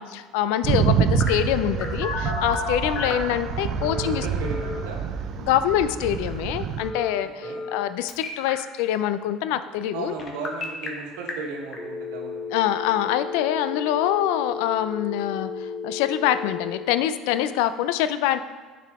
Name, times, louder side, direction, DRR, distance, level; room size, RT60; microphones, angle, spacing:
voice 1, 0.0-4.3 5.4-10.1 12.5-18.4, left 11 dB, 75° left, 12 dB, 0.4 m, -25 dB
sound 1, 0.6-6.9, right 7 dB, 55° right, 0.5 m, -27 dB
Telephone, 1.2-3.3 3.8-4.8 6.8-7.8 8.1-8.5 10.2-10.9 11.3-11.4 11.7-16.8, left 4 dB, 40° left, 1.3 m, -33 dB
voice 2, 4.0-5.0 7.4-7.6 9.9-12.4, right 4 dB, 80° right, 1 dB, 1.3 m, -35 dB
9.5 x 4.7 x 3.6 m, 1.4 s
hypercardioid pair, 80°, 0 cm